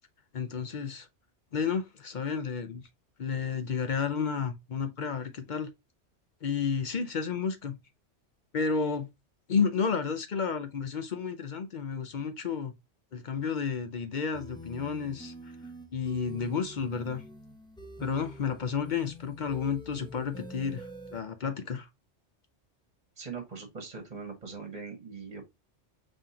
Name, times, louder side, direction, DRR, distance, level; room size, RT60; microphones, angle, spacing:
voice 1, 0.3-1.1 1.5-2.8 3.2-5.7 6.4-7.8 8.5-9.1 9.5-12.8 13.1-15.3 15.9-17.2 18.0-20.9 21.1-21.9, left 6 dB, 50° left, 0.6 m, -31 dB
sound 1, 14.3-21.2, equal, 5° left, 0.5 m, -46 dB
voice 2, 23.2-25.4, right 5 dB, 35° right, 1.2 m, -41 dB
5.4 x 3.6 x 2.7 m
omnidirectional pair, 1.2 m